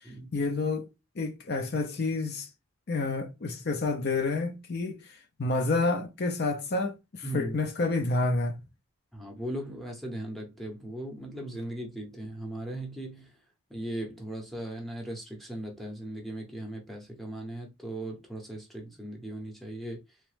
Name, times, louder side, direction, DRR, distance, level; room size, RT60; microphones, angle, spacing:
voice 1, 0.3-0.9 1.2-2.5 2.9-8.6, left 3 dB, 45° left, 0.5 m, -29 dB
voice 2, 7.2-7.6 9.1-13.4 13.7-20.2, right 1 dB, ahead, 0.7 m, -38 dB
3.0 x 2.2 x 3.2 m
head